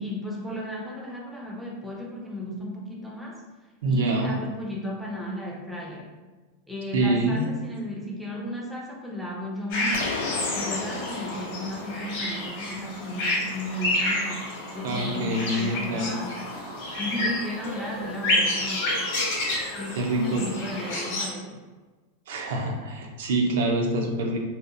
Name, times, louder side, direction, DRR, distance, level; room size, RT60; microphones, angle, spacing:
voice 1, 0.0-3.4 3.9-6.1 6.7-10.2 10.5-16.5 17.0-19.1 19.7-21.6, equal, ahead, -3 dB, 0.3 m, -34 dB
voice 2, 3.8-4.3 6.9-7.4 14.8-16.2 20.0-20.4 22.3-24.4, right 1 dB, 85° right, 1 dB, 0.5 m, -25 dB
sound 1, 9.7-21.3, left 1 dB, 55° left, 0.8 m, -29 dB
sound 2, 9.9-13.7, left 4 dB, 80° left, 0.3 m, -36 dB
2.7 x 2.0 x 2.6 m, 1.3 s
supercardioid pair, 170°, 0 cm